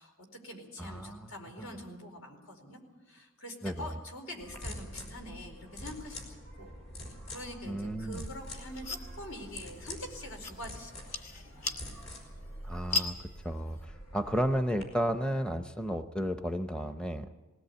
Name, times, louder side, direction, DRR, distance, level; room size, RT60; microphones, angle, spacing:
voice 1, 0.0-2.8 3.1-6.7 7.0-11.7, left 1 dB, 80° left, 3 dB, 4.5 m, -45 dB
voice 2, 0.8-1.3 1.6-1.7 3.6-4.0 7.6-8.2 12.6-17.3, equal, 5° left, 8 dB, 0.6 m, -33 dB
sound 1, 4.4-14.8, left 1 dB, 65° left, 5.0 m, -45 dB
sound 2, 8.2-13.8, left 4 dB, 35° left, 2.0 m, -40 dB
20.0 x 17.5 x 8.4 m, 1.3 s
head